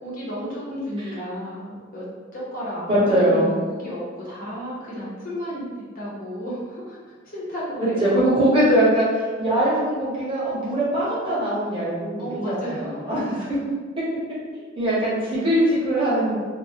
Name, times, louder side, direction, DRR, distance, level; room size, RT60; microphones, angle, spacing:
voice 1, 0.0-2.1 2.3-5.7 5.9-7.0 7.3-8.3 12.2-13.0 13.3-13.5, equal, 45° left, -7 dB, 0.7 m, -32 dB
voice 2, 2.9-3.5 7.8-9.1 9.4-13.2 14.5-16.3, right 1 dB, 25° right, -8 dB, 0.7 m, -21 dB
2.2 x 2.1 x 2.6 m, 1.5 s
head